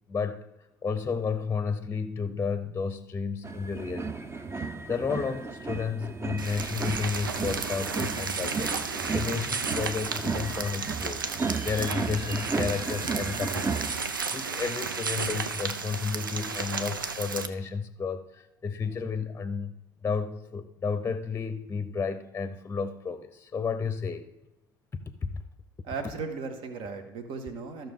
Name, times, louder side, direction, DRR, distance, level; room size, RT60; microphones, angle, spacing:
voice 1, 0.1-0.5 0.8-8.8 9.1-11.3 11.6-13.9 14.3-19.8 20.0-24.3 25.2-25.4, left 5 dB, 20° left, 11 dB, 0.8 m, -32 dB
sound 1, 3.4-13.9, right 4 dB, 25° right, 0.8 m, -34 dB
sound 2, 6.4-17.5, right 5 dB, 85° right, 0.6 m, -33 dB
voice 2, 25.8-27.9, right 4 dB, 55° right, 6 dB, 1.6 m, -36 dB
14.5 x 5.9 x 3.7 m, 0.92 s
figure-of-eight pair, 65°, 11 cm